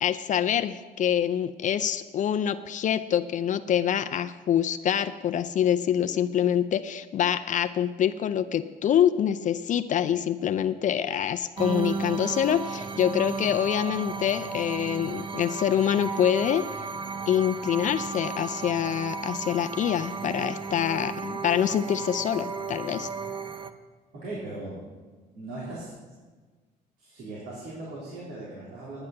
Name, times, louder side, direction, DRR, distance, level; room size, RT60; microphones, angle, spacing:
voice 1, 0.0-16.7 17.3-23.1, left 9 dB, 50° left, 10 dB, 0.5 m, -25 dB
sound 1, 11.6-23.7, right 5 dB, 30° right, 0.7 m, -34 dB
voice 2, 24.1-24.8 25.3-25.9 27.0-29.1, right 2 dB, 75° right, -7 dB, 3.8 m, -38 dB
9.8 x 9.7 x 6.7 m, 1.4 s
cardioid pair, 110°, 17 cm